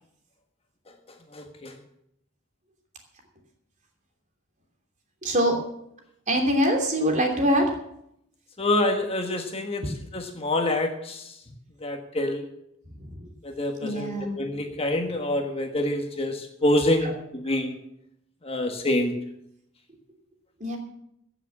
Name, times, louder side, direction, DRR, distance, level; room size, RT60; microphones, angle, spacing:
voice 1, 1.3-1.7 8.6-9.8 10.1-11.2 11.8-12.4 13.4-17.7 18.4-19.1, left 1 dB, 30° left, 4 dB, 1.4 m, -26 dB
voice 2, 5.2-5.6 6.3-7.7 9.8-9.9 13.0-13.3 13.8-14.6 17.0-17.1 17.4-17.6 20.6-20.8, equal, 35° right, 2 dB, 2.9 m, -24 dB
15.5 x 7.3 x 7.3 m, 0.76 s
head